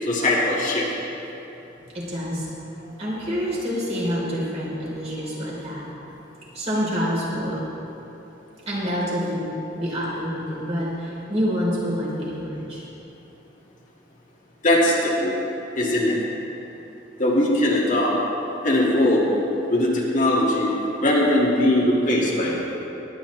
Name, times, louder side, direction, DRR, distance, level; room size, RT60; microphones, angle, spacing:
voice 1, 0.0-0.9 14.6-15.3 15.8-16.2 17.2-18.2 18.6-19.3 19.7-20.7 21.0-22.7, left 1 dB, 40° left, -4 dB, 1.8 m, -20 dB
voice 2, 1.9-2.5 2.8-5.8 6.5-7.6 8.7-9.5 9.8-12.9, equal, 35° right, -6 dB, 3.2 m, -27 dB
21.0 x 9.2 x 3.1 m, 3.0 s
head